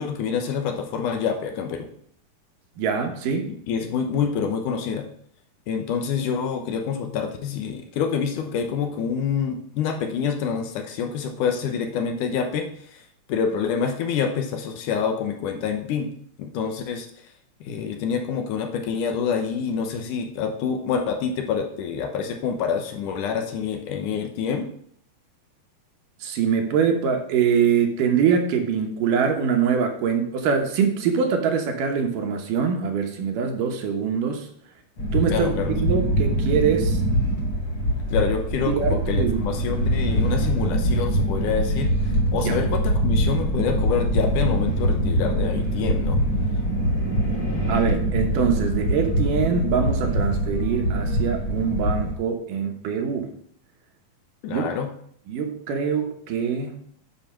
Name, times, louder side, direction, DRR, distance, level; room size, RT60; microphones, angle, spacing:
voice 1, 0.0-1.9 3.7-5.1 5.7-13.0 13.3-16.1 16.4-17.1 17.6-24.7 35.2-35.9 38.1-41.9 42.3-46.2 54.4-54.9, left 6 dB, 75° left, 4 dB, 2.4 m, -27 dB
voice 2, 2.8-3.5 26.2-34.5 35.1-37.0 38.7-39.5 42.3-42.6 47.7-53.3 54.5-54.6 55.3-56.8, right 6 dB, 75° right, 3 dB, 2.8 m, -24 dB
sound 1, 35.0-52.1, right 1 dB, 45° left, 1.9 m, -23 dB
10.5 x 4.6 x 5.8 m, 0.64 s
omnidirectional pair, 3.8 m